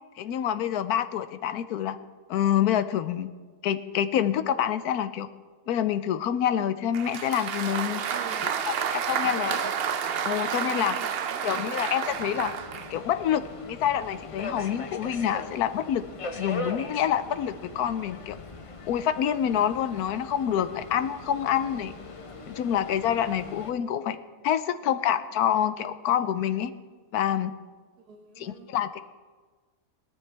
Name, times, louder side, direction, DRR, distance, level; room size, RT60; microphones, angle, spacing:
voice 1, 0.2-2.0 2.3-3.3 3.6-5.3 5.7-8.0 8.4-9.7 10.2-11.0 11.4-12.5 12.9-16.0 16.4-18.4 18.9-21.9 22.5-24.2 24.4-26.7 27.1-27.5 28.4-29.0, left 10 dB, 85° left, 13 dB, 1.1 m, -27 dB
Applause, 6.9-13.0, right 7 dB, 55° right, 0.7 m, -30 dB
voice 2, 8.1-8.6 9.2-9.7 10.8-11.7 28.0-28.7, right 6 dB, 85° right, 2 dB, 1.6 m, -44 dB
Subway metro underground, 12.1-23.7, left 3 dB, 35° left, 0.5 m, -40 dB
18.5 x 13.5 x 3.4 m, 1.4 s
omnidirectional pair, 1.6 m